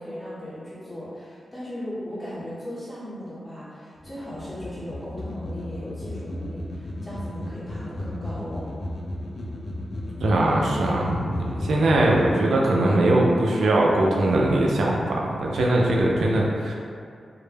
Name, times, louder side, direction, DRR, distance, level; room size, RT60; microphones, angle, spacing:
voice 1, 0.0-8.7, equal, 25° left, -11 dB, 0.9 m, -37 dB
sound 1, 4.0-12.3, left 1 dB, 60° left, 0.4 m, -34 dB
voice 2, 10.2-16.7, right 1 dB, 85° right, -2 dB, 0.3 m, -21 dB
2.1 x 2.0 x 3.2 m, 2.3 s
cardioid pair, 70°, 0 cm